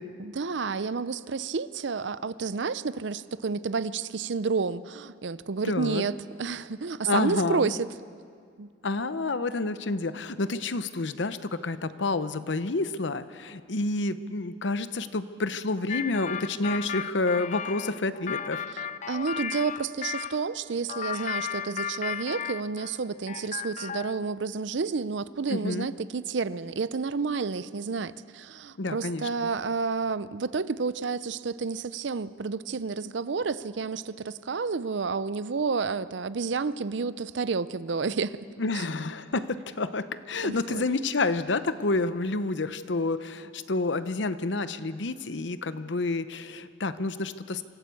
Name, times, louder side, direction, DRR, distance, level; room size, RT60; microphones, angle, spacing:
voice 1, 0.2-7.8 8.6-8.7 18.7-38.4 38.7-38.8 40.4-40.8, right 4 dB, 70° right, 16 dB, 0.6 m, -30 dB
voice 2, 5.6-6.0 7.0-7.7 8.8-18.6 25.5-25.9 28.8-29.3 38.6-47.6, left 3 dB, 70° left, 13 dB, 0.8 m, -29 dB
sound 1, 15.9-20.4 20.9-23.0 23.3-24.2, left 8 dB, 40° left, 0.5 m, -34 dB
25.0 x 14.0 x 8.4 m, 2.2 s
head